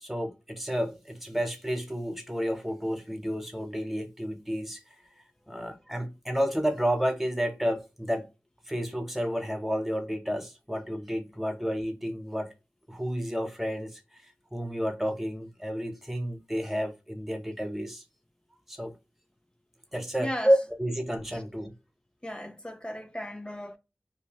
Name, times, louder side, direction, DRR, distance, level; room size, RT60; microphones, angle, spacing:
voice 1, 0.0-4.8 5.5-8.3 8.7-12.5 12.9-14.2 14.5-18.0 18.7-19.0 19.9-21.7, equal, 5° right, 0.9 m, -30 dB
voice 2, 20.2-20.5 21.3-21.4 22.2-23.8, equal, 20° left, 0.4 m, -36 dB
2.7 x 2.3 x 2.9 m
wide cardioid pair, 55°, 5 cm